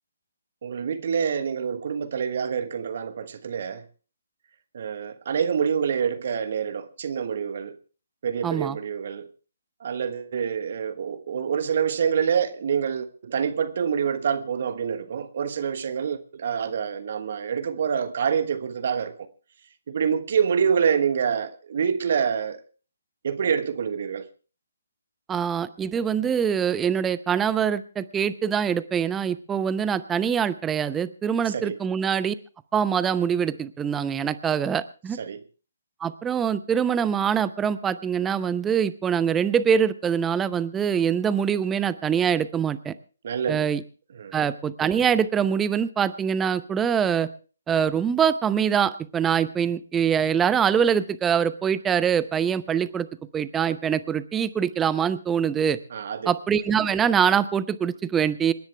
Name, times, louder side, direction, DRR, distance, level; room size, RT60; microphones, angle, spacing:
voice 1, 0.6-3.8 4.7-7.7 8.2-9.3 9.8-19.1 19.9-22.6 23.2-24.2 31.5-31.8 35.2-35.4 43.2-43.7 44.1-44.3 55.9-56.3, right 7 dB, 50° right, 1.3 m, -26 dB
voice 2, 8.4-8.8 25.3-32.3 32.7-35.2 36.0-42.9 43.5-43.8 44.3-47.3 47.7-53.1 53.3-55.8 56.3-58.5, right 7 dB, 10° right, 0.7 m, -24 dB
27.5 x 10.5 x 3.4 m
figure-of-eight pair, 140°, 0 cm